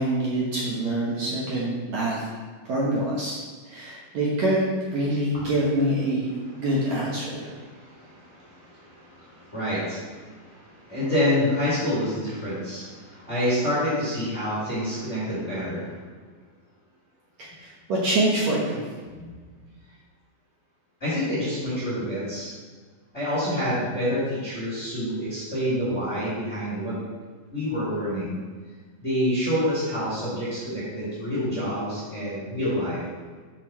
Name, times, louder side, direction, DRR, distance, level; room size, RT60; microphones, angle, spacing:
voice 1, 0.0-2.3 2.7-3.4 3.7-7.5 17.4-18.8, right 1 dB, 60° right, -6 dB, 2.1 m, -25 dB
voice 2, 7.5-15.9 19.2-19.3 21.0-22.5 23.1-27.0 27.5-28.4 29.0-33.0, equal, 20° left, -10 dB, 2.4 m, -28 dB
6.9 x 6.4 x 4.4 m, 1.5 s
omnidirectional pair, 4.0 m